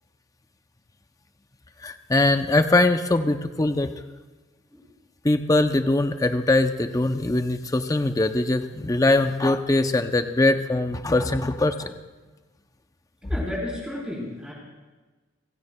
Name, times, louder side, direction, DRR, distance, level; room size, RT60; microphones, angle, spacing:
voice 1, 1.8-3.9 5.2-11.9, left 2 dB, 15° left, 8 dB, 0.5 m, -22 dB
voice 2, 13.2-14.5, left 1 dB, 5° right, -4 dB, 3.8 m, -32 dB
28.5 x 16.5 x 2.2 m, 1.2 s
head